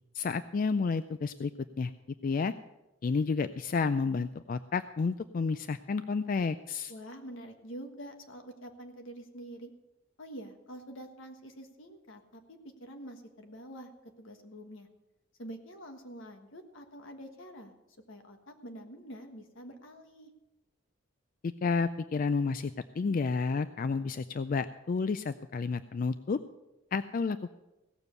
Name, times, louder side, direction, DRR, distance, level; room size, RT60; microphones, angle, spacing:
voice 1, 0.1-1.5 1.8-1.9 2.2-2.5 3.0-6.9 21.4-26.4 26.9-27.5, left 4 dB, 45° left, 12 dB, 0.3 m, -31 dB
voice 2, 6.9-9.7 10.2-13.9 14.2-14.9 15.4-17.7 18.1-20.3, right 1 dB, 80° left, 5 dB, 1.5 m, -46 dB
16.5 x 7.1 x 6.7 m, 0.99 s
head